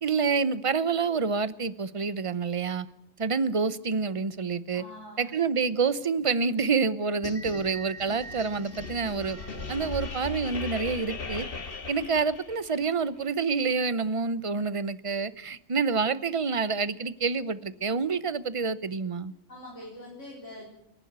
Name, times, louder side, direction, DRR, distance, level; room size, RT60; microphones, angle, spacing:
voice 1, 0.0-2.9 3.2-4.8 5.2-9.4 9.7-11.5 11.9-19.3, right 5 dB, 30° right, 0.7 m, -28 dB
voice 2, 4.7-5.3 19.5-20.7, left 1 dB, 60° left, 4.6 m, -44 dB
sound 1, 7.2-12.9, left 4 dB, 45° left, 1.8 m, -38 dB
sound 2, 7.3-11.5, right 4 dB, 15° right, 1.4 m, -48 dB
29.0 x 11.5 x 8.1 m
omnidirectional pair, 1.4 m